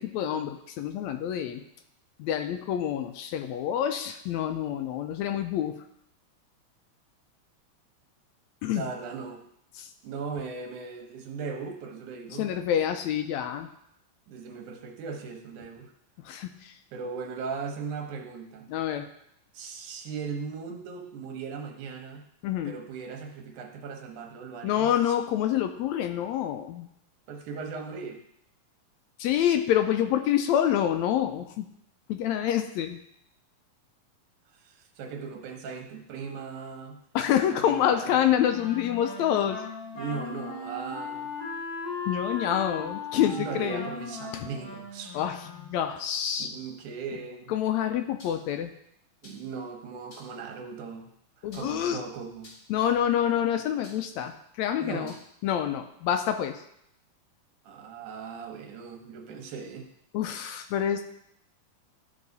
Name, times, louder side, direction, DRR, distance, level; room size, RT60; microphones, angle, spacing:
voice 1, 0.0-1.6 2.2-5.7 8.6-8.8 9.8-9.9 12.3-13.7 16.2-16.7 18.7-19.1 22.4-22.7 24.6-26.9 29.2-31.7 32.1-33.0 37.2-39.6 42.1-43.9 44.3-44.5 45.1-46.5 47.5-48.7 51.4-52.0 52.7-55.1 55.4-56.6 60.1-61.0, left 10 dB, 80° left, 7 dB, 1.7 m, -27 dB
voice 2, 8.7-9.4 10.0-12.5 14.3-15.9 16.9-18.7 19.5-22.2 22.6-25.2 27.3-28.2 34.5-37.0 37.5-38.3 39.9-41.3 43.1-45.2 46.4-47.5 49.2-51.1 51.5-52.5 54.8-55.1 57.6-59.9, right 5 dB, 80° right, 3 dB, 2.5 m, -38 dB
Wind instrument woodwind instrument, 38.5-45.9, left 3 dB, 15° left, 4.0 m, -37 dB
sound 1, 48.2-48.5 49.2-49.6 50.1-50.4 51.5-52.0 52.4-52.8 53.8-54.2 55.1-55.3, left 1 dB, 40° left, 2.6 m, -51 dB
13.0 x 4.7 x 4.0 m, 0.74 s
omnidirectional pair, 3.4 m